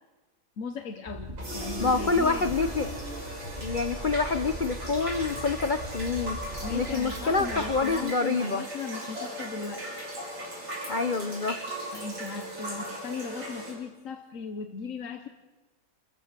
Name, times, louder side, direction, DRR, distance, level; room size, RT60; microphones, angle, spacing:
voice 1, 0.6-2.7 6.6-10.1 11.9-15.3, left 5 dB, 50° left, 7 dB, 1.2 m, -38 dB
sound 1, 1.1-7.8, right 1 dB, 25° right, 4.4 m, -40 dB
sound 2, 1.4-13.7, right 1 dB, 70° right, 7.3 m, -38 dB
voice 2, 1.8-2.9 3.6-8.6 10.9-11.6, left 4 dB, 75° left, 10 dB, 0.4 m, -27 dB
30.0 x 14.5 x 7.5 m, 1.2 s
omnidirectional pair, 2.2 m